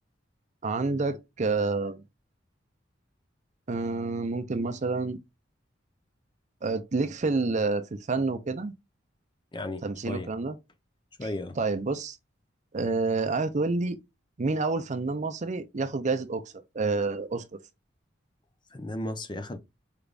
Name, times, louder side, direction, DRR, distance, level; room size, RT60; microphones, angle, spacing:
voice 1, 0.6-2.0 3.7-5.2 6.6-8.7 9.8-10.6 11.2-11.3 11.6-12.2 12.7-14.0 14.4-17.4, right 3 dB, 40° right, 0.5 m, -28 dB
voice 2, 9.5-10.3 11.2-11.6 18.7-19.6, left 1 dB, 25° left, 0.6 m, -35 dB
4.9 x 3.4 x 2.4 m
head